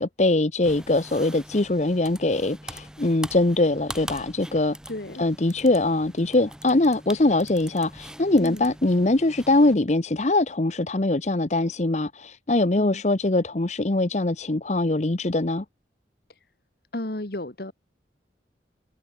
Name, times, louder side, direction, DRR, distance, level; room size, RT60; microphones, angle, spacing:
voice 1, 0.0-4.8 5.2-15.6, left 2 dB, 40° left, 0.9 m, -22 dB
sound 1, 0.6-9.7, right 1 dB, 5° right, 6.3 m, -42 dB
voice 2, 4.9-5.2 8.4-8.7 12.8-13.0 16.9-17.7, left 1 dB, 55° left, 1.8 m, -33 dB
head